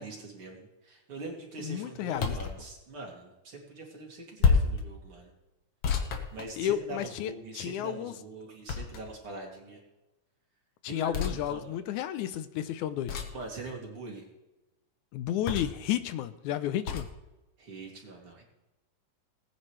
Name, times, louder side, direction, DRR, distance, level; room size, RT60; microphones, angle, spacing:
voice 1, 0.0-5.3 6.3-9.8 10.9-11.7 13.3-14.2 17.6-18.4, right 2 dB, 45° right, -1 dB, 3.2 m, -43 dB
voice 2, 1.6-2.4 6.6-8.1 10.8-13.2 15.1-17.1, left 11 dB, 80° left, 13 dB, 2.0 m, -32 dB
sound 1, 2.1-2.6 4.4-4.8 5.8-7.0 8.7-9.3 11.1-11.4 13.1-13.4 15.5-15.9 16.9-17.1, left 5 dB, 55° left, 2.2 m, -28 dB
19.5 x 9.8 x 3.2 m, 1.0 s
omnidirectional pair, 3.5 m